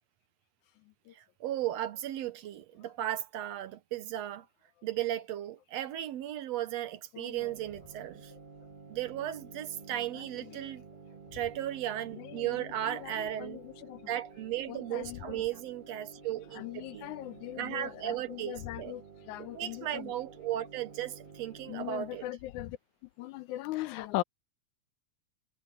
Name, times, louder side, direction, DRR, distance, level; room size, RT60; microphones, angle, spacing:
voice 1, 1.2-4.5 4.8-8.3 8.9-10.8 11.3-13.6 14.1-17.1 17.6-19.0 19.4-22.3, right 12 dB, 70° right, 1.9 m, -36 dB
voice 2, 7.1-7.5 10.3-10.6 12.1-14.1 14.7-15.4 16.6-20.1 21.7-22.8 23.2-24.2, left 16 dB, 85° left, 2.2 m, -40 dB
sound 1, 7.4-22.3, right 4 dB, 50° right, 0.5 m, -52 dB
omnidirectional pair, 3.3 m